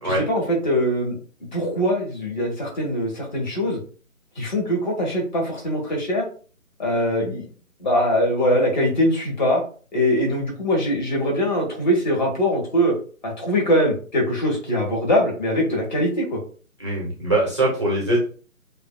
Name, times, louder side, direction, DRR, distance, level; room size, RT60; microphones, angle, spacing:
voice 1, 0.0-1.2 1.5-3.8 4.3-6.2 6.8-7.4 7.8-9.6 9.9-12.9 13.2-16.4, equal, 35° left, -1 dB, 1.3 m, -22 dB
voice 2, 16.8-18.2, right 1 dB, 20° right, -5 dB, 0.7 m, -22 dB
6.5 x 2.4 x 2.2 m, 0.41 s
figure-of-eight pair, 150°, 42 cm